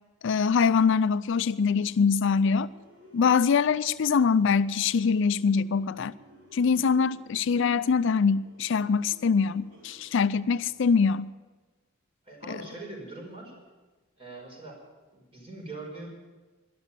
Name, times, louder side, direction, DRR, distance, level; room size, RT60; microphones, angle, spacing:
voice 1, 0.2-2.7 3.1-6.1 6.5-11.3 12.5-12.6, left 5 dB, 65° left, 0.4 m, -23 dB
sound 1, 1.5-11.2, equal, 60° right, 4.4 m, -56 dB
voice 2, 12.2-13.5 14.2-14.8 15.1-16.1, right 2 dB, 30° right, 5.0 m, -42 dB
12.5 x 11.5 x 8.4 m
head